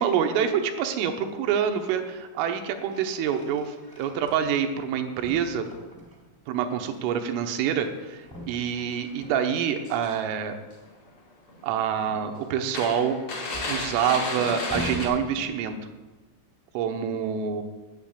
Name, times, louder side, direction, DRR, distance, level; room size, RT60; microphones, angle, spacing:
voice 1, 0.0-5.6 6.5-10.5 11.6-13.2 13.7-15.8 16.7-17.6, right 8 dB, 85° right, 6 dB, 3.5 m, -26 dB
sound 1, 1.5-2.1 2.4-4.9 5.2-6.4 8.2-9.8 11.8-16.0, right 1 dB, 30° right, 0.4 m, -42 dB
sound 2, 6.9-7.0 7.3-7.6 8.3-8.4 8.9-9.0 9.7-10.4 10.7-11.2 11.5-11.6 12.0-12.2 12.7-15.1, left 2 dB, 40° left, 3.1 m, -33 dB
10.5 x 6.7 x 8.8 m, 1.2 s
omnidirectional pair, 5.7 m